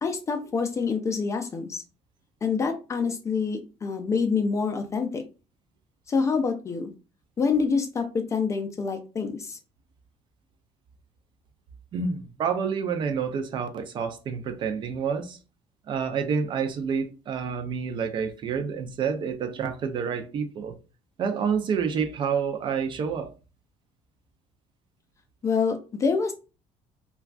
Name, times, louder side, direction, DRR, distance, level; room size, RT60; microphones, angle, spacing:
voice 1, 0.0-1.8 2.4-5.2 6.1-6.9 7.4-9.6 25.4-26.3, left 5 dB, 25° left, 0.4 m, -26 dB
voice 2, 11.9-15.4 15.9-20.7 21.2-23.3, right 6 dB, 40° right, 0.4 m, -28 dB
3.4 x 2.3 x 2.3 m
cardioid pair, 155°, 13 cm